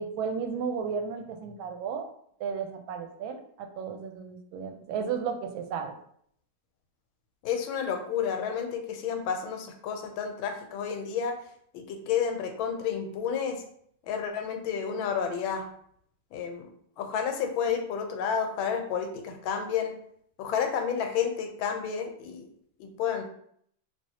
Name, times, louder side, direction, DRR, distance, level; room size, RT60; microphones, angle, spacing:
voice 1, 0.0-2.1 2.4-5.9, right 6 dB, 85° right, 5 dB, 1.4 m, -33 dB
voice 2, 7.4-11.4 11.7-13.6 14.1-15.7 16.3-19.9 20.4-22.5 22.8-23.2, left 7 dB, 90° left, 5 dB, 1.4 m, -30 dB
3.3 x 2.9 x 2.7 m, 0.66 s
omnidirectional pair, 2.1 m